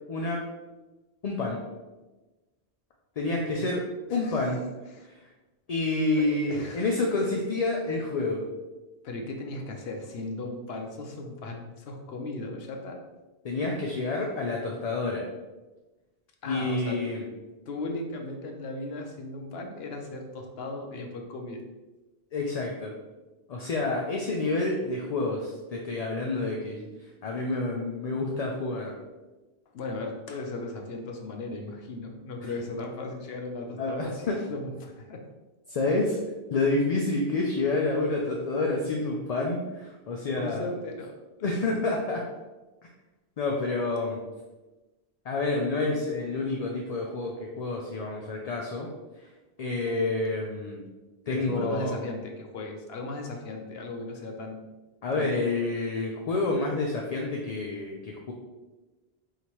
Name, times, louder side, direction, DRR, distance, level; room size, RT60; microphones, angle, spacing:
voice 1, 0.1-0.4 1.2-1.6 3.2-3.8 4.1-4.6 5.7-8.4 13.4-15.2 16.4-17.2 22.3-22.9 23.5-26.9 27.2-28.9 33.8-34.4 35.7-36.2 36.5-40.6 41.4-42.2 43.4-44.2 45.3-48.9 49.6-50.9 51.3-52.0 55.0-58.3, left 2 dB, 50° left, -1 dB, 0.5 m, -28 dB
voice 2, 4.1-4.6 4.9-5.1 6.2-7.4 9.0-13.0 16.4-17.2 17.7-21.6 29.7-35.2 40.4-41.7 49.8-50.0 51.3-54.6 55.1-55.5, left 2 dB, 75° left, 2 dB, 0.9 m, -37 dB
5.0 x 2.8 x 3.0 m, 1.1 s
omnidirectional pair, 1.1 m